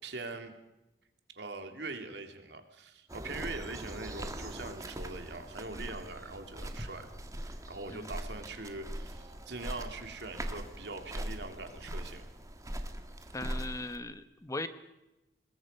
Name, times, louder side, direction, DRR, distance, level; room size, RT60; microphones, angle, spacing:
voice 1, 0.0-0.5 1.4-7.1 7.4-12.3, right 3 dB, 75° right, 6 dB, 2.8 m, -42 dB
sound 1, 3.1-14.0, right 1 dB, 20° right, 1.7 m, -41 dB
voice 2, 13.3-14.7, left 2 dB, 20° left, 11 dB, 1.1 m, -38 dB
26.5 x 20.5 x 5.5 m, 0.96 s
head